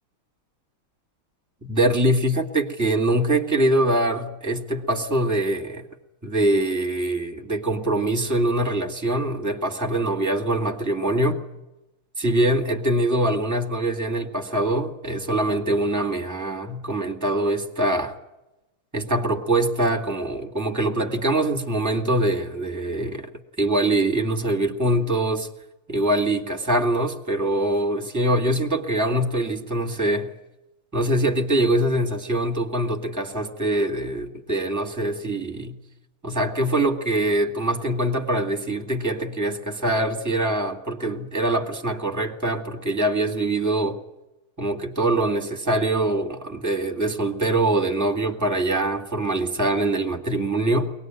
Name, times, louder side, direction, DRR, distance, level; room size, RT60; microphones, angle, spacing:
voice 1, 1.6-5.9 6.2-11.4 12.2-18.1 18.9-23.3 23.6-25.5 25.9-30.3 30.9-35.7 36.2-44.0 44.6-50.9, right 1 dB, 10° right, 1.8 m, -23 dB
22.5 x 19.0 x 9.1 m
omnidirectional pair, 2.3 m